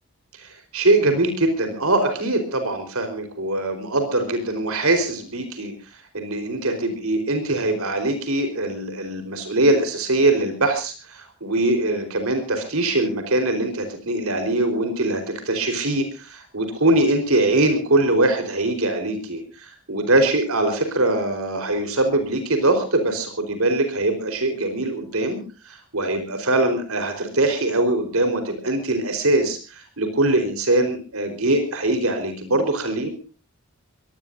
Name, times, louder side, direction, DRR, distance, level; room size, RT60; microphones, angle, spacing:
voice 1, 0.3-5.7 6.1-25.4 25.6-33.1, right 2 dB, 75° right, 7 dB, 4.4 m, -22 dB
24.0 x 18.5 x 2.7 m, 0.35 s
head